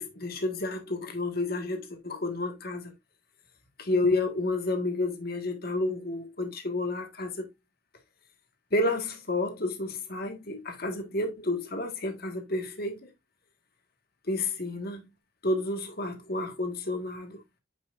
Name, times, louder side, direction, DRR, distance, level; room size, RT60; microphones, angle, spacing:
voice 1, 0.0-2.9 3.8-7.5 8.7-13.1 14.3-15.0 15.4-17.4, left 2 dB, 50° left, 1.7 m, -30 dB
9.2 x 6.2 x 2.5 m
head